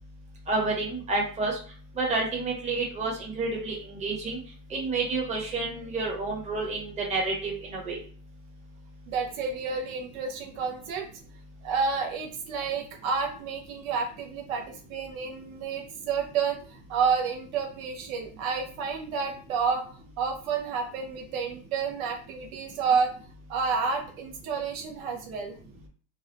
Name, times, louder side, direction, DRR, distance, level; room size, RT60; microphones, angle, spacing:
voice 1, 0.5-1.6 2.0-4.4 4.7-8.0, right 3 dB, 15° right, -2 dB, 1.1 m, -29 dB
voice 2, 9.1-11.1 11.6-19.8 20.2-23.1 23.5-25.5, right 5 dB, 60° right, 2 dB, 0.8 m, -30 dB
4.0 x 2.3 x 2.8 m, 0.41 s
supercardioid pair, 135°, 48 cm